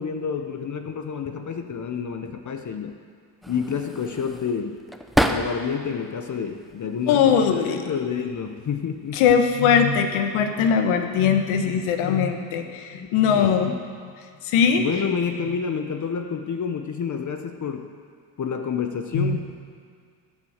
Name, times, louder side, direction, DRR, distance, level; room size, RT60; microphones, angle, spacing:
voice 1, 0.0-3.0 3.5-4.8 5.2-7.4 7.8-9.2 12.1-12.2 12.9-13.9 14.8-17.9 18.4-19.5, left 6 dB, 35° left, 6 dB, 1.0 m, -29 dB
sound 1, 3.4-5.9 6.3-7.2 8.1-8.5 8.8-9.6, equal, ahead, 0.7 m, -29 dB
voice 2, 7.1-7.8 9.1-13.7 14.4-14.8 19.1-19.4, left 7 dB, 75° left, 6 dB, 1.4 m, -20 dB
15.5 x 7.7 x 6.5 m, 2.1 s
supercardioid pair, 75°, 49 cm